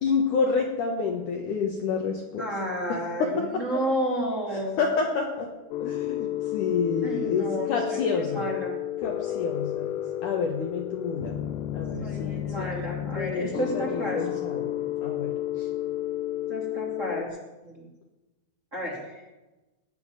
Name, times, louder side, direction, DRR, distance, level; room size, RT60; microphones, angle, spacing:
voice 1, 0.0-2.5 3.2-3.3 4.5-5.5 5.8-8.5 9.0-10.0 10.2-11.3 11.7-12.7 13.1-15.7, left 5 dB, 60° left, 1 dB, 2.3 m, -29 dB
voice 2, 2.4-4.8 7.0-8.7 12.0-14.2 16.5-17.9 18.7-19.2, equal, 20° right, -3 dB, 2.5 m, -32 dB
sound 1, 5.7-17.2, left 13 dB, 80° left, 2.9 m, -32 dB
19.0 x 7.1 x 9.7 m, 1.1 s
omnidirectional pair, 5.0 m